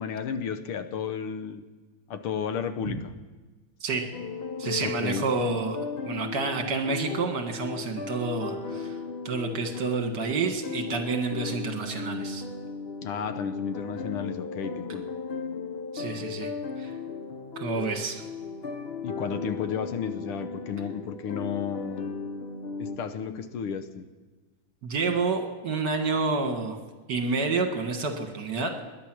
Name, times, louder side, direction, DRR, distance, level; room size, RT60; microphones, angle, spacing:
voice 1, 0.0-1.6 2.1-3.1 4.8-5.2 13.0-15.1 19.0-22.2 22.8-24.1, left 7 dB, 80° left, 10 dB, 1.8 m, -33 dB
voice 2, 3.8-4.1 4.6-5.8 6.1-9.0 9.3-12.4 15.9-16.5 16.8-17.0 17.6-18.2 24.8-26.8 27.1-28.7, right 4 dB, 55° right, 4 dB, 2.2 m, -29 dB
sound 1, 4.1-23.0, left 4 dB, 55° left, 0.7 m, -36 dB
21.0 x 10.5 x 6.2 m, 1.3 s
omnidirectional pair, 2.4 m